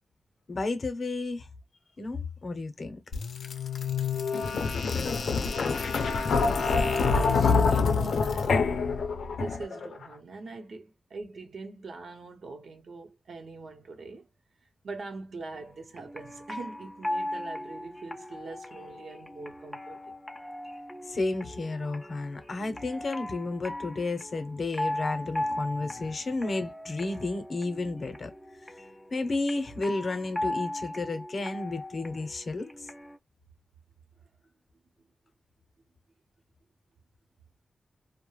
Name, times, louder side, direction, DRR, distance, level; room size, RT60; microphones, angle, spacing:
voice 1, 0.5-1.5 2.0-3.0 21.1-28.3 28.7-28.8 29.1-32.7, left 3 dB, 50° left, 0.6 m, -32 dB
sound 1, 3.1-9.9, left 4 dB, 90° left, 0.5 m, -26 dB
voice 2, 6.3-8.9 9.3-14.3 14.8-20.1, right 3 dB, 70° right, 0.7 m, -42 dB
sound 2, 15.5-33.2, left 1 dB, 10° left, 0.4 m, -38 dB
2.3 x 2.1 x 3.0 m
wide cardioid pair, 135°, 0 cm